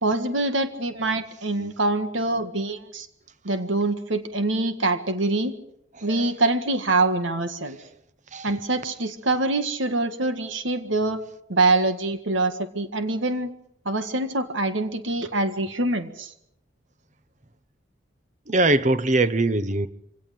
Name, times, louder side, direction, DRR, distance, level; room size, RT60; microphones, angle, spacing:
voice 1, 0.0-3.1 3.4-5.5 6.0-7.8 8.4-11.2 11.5-13.5 13.9-16.3, right 2 dB, 75° right, 1.9 m, -24 dB
voice 2, 6.0-6.3 8.3-8.7 18.5-19.9, right 2 dB, 40° right, 1.1 m, -22 dB
25.0 x 18.0 x 7.8 m
head